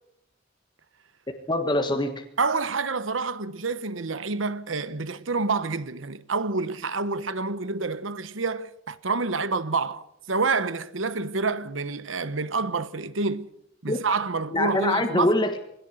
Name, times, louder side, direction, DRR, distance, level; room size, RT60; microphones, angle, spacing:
voice 1, 1.5-2.2 13.9-14.0 14.5-15.6, left 1 dB, 25° left, 1.6 m, -24 dB
voice 2, 2.4-13.5 13.8-15.3, right 4 dB, 75° right, 1.1 m, -28 dB
22.0 x 17.0 x 7.9 m
head